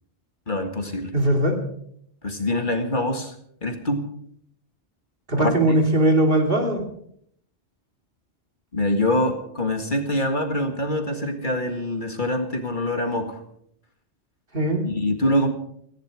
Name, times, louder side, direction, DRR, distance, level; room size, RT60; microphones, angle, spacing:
voice 1, 0.5-1.1 2.2-3.3 3.6-4.0 5.4-5.8 8.7-13.4 14.9-15.5, left 1 dB, 45° left, 5 dB, 2.1 m, -24 dB
voice 2, 1.1-1.5 5.3-6.8 14.5-14.8, right 1 dB, 50° right, 3 dB, 3.0 m, -20 dB
17.5 x 15.5 x 4.9 m, 0.67 s
omnidirectional pair, 1.2 m